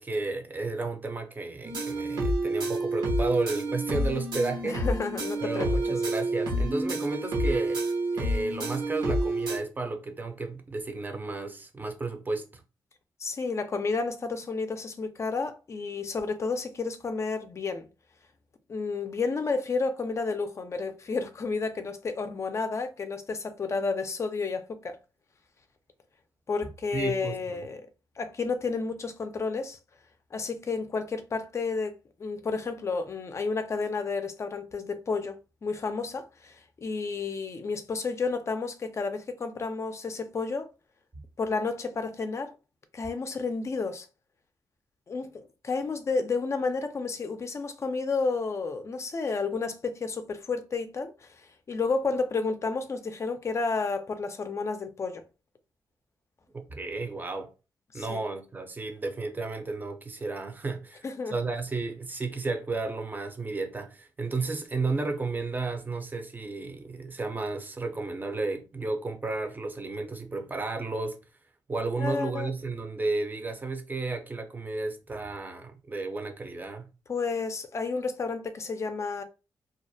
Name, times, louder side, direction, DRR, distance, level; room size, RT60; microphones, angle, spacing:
voice 1, 0.0-4.8 5.4-7.8 8.1-12.6 26.9-27.6 56.5-57.5 57.9-71.2 71.7-76.9, right 3 dB, 25° right, 0.5 m, -33 dB
sound 1, 1.6-9.6, right 1 dB, 80° right, 0.9 m, -29 dB
voice 2, 4.6-5.7 13.2-17.9 18.7-25.0 26.5-27.9 28.2-29.8 30.3-40.7 41.4-42.5 42.9-44.1 45.1-55.2 57.9-58.2 61.0-61.3 72.0-72.5 77.1-79.2, left 4 dB, 40° left, 0.4 m, -31 dB
2.3 x 2.1 x 2.6 m
cardioid pair, 95°, 7 cm